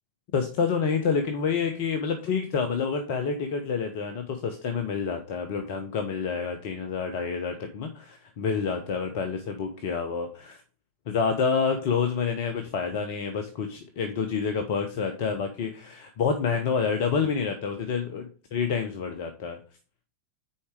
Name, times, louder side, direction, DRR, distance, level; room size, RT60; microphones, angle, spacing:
voice 1, 0.3-10.6 11.1-19.6, left 5 dB, 50° left, 6 dB, 1.1 m, -28 dB
8.5 x 4.9 x 4.9 m, 0.37 s
figure-of-eight pair, 90°, 0 cm